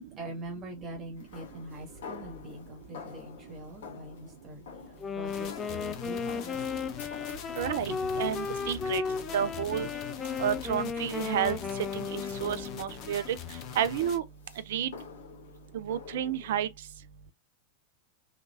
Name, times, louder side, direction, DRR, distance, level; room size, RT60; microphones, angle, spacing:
voice 1, 0.0-6.9 8.1-8.2 8.8-8.9, right 1 dB, 25° right, 1.3 m, -44 dB
sound 1, 1.2-16.6, left 6 dB, 60° left, 1.1 m, -49 dB
Wind instrument woodwind instrument, 5.0-13.0, left 5 dB, 20° left, 0.3 m, -35 dB
sound 2, 5.3-14.2, left 8 dB, 40° left, 0.7 m, -43 dB
voice 2, 7.6-9.0 9.3-9.9 10.4-11.6 11.9-13.4 13.8-14.2 14.7-14.9 15.7-16.7, right 9 dB, 55° right, 0.4 m, -30 dB
3.3 x 2.9 x 2.4 m
figure-of-eight pair, 90°, 0 cm